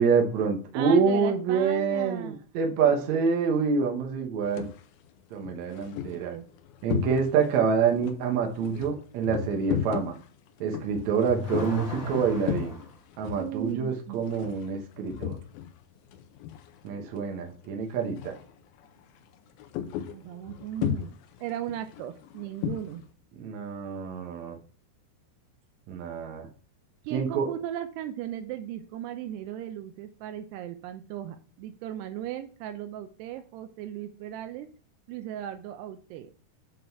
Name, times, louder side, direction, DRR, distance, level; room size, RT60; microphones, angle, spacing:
voice 1, 0.0-4.7 5.3-6.3 6.8-10.2 10.6-12.8 13.2-15.4 16.8-18.4 23.4-24.6 25.9-26.5 27.1-27.5, right 6 dB, 65° right, 2 dB, 1.8 m, -26 dB
voice 2, 0.7-2.4 6.1-6.5 13.3-14.3 20.1-23.0 27.0-34.7 35.1-36.3, right 11 dB, 80° right, 8 dB, 2.6 m, -37 dB
sound 1, 4.4-4.8 5.3-7.6 7.9-17.2 17.5-17.7 18.1-18.5 18.8-23.0, left 10 dB, 85° left, 2.2 m, -35 dB
Car / Accelerating revving vroom, 10.7-13.0, left 1 dB, 65° left, 1.1 m, -37 dB
7.6 x 4.2 x 4.5 m, 0.39 s
omnidirectional pair, 5.0 m